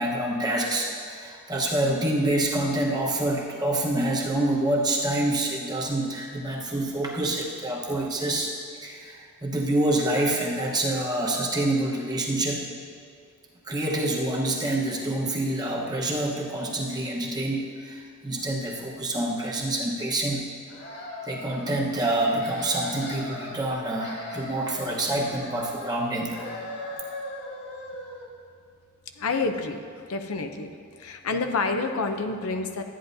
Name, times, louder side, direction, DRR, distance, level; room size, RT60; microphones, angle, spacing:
voice 1, 0.0-8.5 8.8-12.6 13.7-20.4 21.3-26.4, right 1 dB, 20° right, -2 dB, 1.1 m, -27 dB
sound 1, 20.7-21.8 22.2-23.6 23.8-26.0 26.3-28.3, left 1 dB, 55° left, 1.8 m, -38 dB
voice 2, 29.2-29.8 30.1-30.7 31.0-32.8, left 3 dB, 75° left, 6 dB, 0.6 m, -28 dB
13.0 x 9.3 x 2.7 m, 2.1 s
head